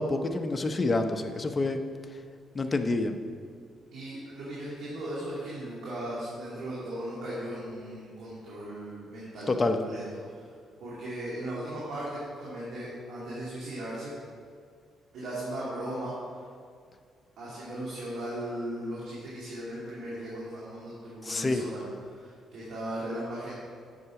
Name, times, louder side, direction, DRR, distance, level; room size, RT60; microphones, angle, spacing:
voice 1, 0.0-1.8 2.5-3.2 9.5-9.8 21.2-21.6, left 2 dB, 30° left, 6 dB, 0.8 m, -27 dB
voice 2, 3.9-10.4 10.8-14.1 15.1-16.4 17.4-23.5, right 1 dB, 75° right, -7 dB, 2.4 m, -37 dB
9.8 x 6.8 x 4.9 m, 2.1 s
cardioid pair, 90°, 0 cm